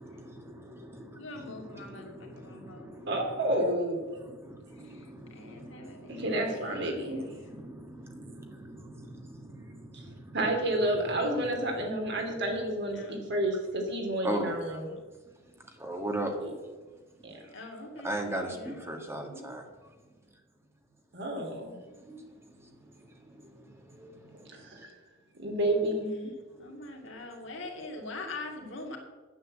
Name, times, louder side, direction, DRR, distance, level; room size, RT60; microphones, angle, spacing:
voice 1, 0.0-3.3 4.1-6.4 6.8-10.4 14.2-14.8 15.8-16.4 18.0-19.7 22.0-24.9 26.5-26.6, right 1 dB, 15° right, 3 dB, 1.6 m, -40 dB
voice 2, 1.1-3.0 4.8-7.3 12.9-13.4 17.5-19.5 26.6-29.0, left 2 dB, 65° left, 1 dB, 2.3 m, -44 dB
voice 3, 3.1-4.0 6.1-7.3 9.9-10.0 10.3-14.9 16.4-16.5 17.2-17.4 21.1-21.8 24.6-24.9 25.4-26.3, right 1 dB, 60° right, 2 dB, 2.5 m, -30 dB
9.7 x 8.3 x 7.7 m, 1.3 s
head